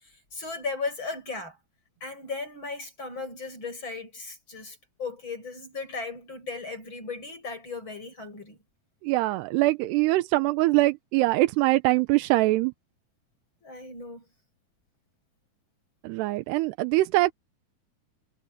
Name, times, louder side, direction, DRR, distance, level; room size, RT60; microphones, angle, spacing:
voice 1, 0.0-1.6 2.0-8.6 13.6-14.2, left 4 dB, 30° left, 8.5 m, -36 dB
voice 2, 9.0-12.7 16.0-17.3, right 19 dB, 90° right, 2.9 m, -23 dB
omnidirectional pair, 4.7 m